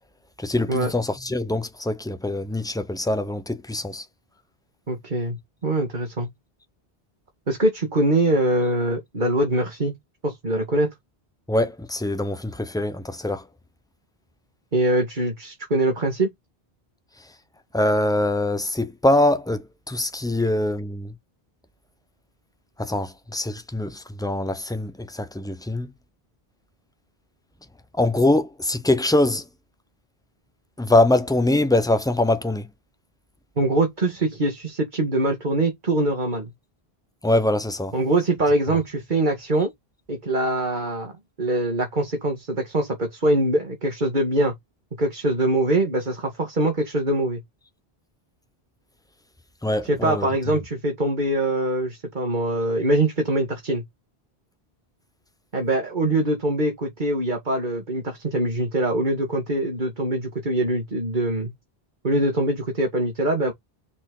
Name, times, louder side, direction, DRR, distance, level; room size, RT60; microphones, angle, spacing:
voice 1, 0.4-4.0 11.5-13.4 17.7-21.1 22.8-25.9 28.0-29.4 30.8-32.7 37.2-37.9 38.7-38.8 49.6-50.3, left 1 dB, 5° left, 0.7 m, -23 dB
voice 2, 4.9-6.3 7.5-9.9 10.2-10.9 14.7-16.3 33.6-36.5 37.9-39.7 40.1-41.1 41.4-44.5 45.0-47.4 49.8-53.8 55.5-61.5 62.0-63.5, right 1 dB, 50° right, 2.1 m, -23 dB
6.0 x 4.3 x 3.8 m
omnidirectional pair, 1.0 m